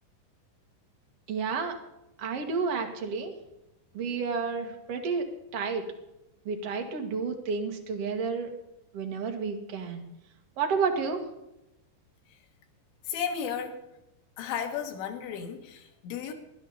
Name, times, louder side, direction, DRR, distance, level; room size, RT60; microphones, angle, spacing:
voice 1, 1.3-1.7 2.2-3.3 3.9-5.8 6.5-8.5 8.9-10.0 10.6-11.2, right 5 dB, 50° right, 3 dB, 2.0 m, -30 dB
voice 2, 13.1-13.8 14.4-16.3, left 7 dB, 85° left, 3 dB, 3.9 m, -34 dB
19.5 x 11.5 x 4.2 m, 0.90 s
omnidirectional pair, 5.1 m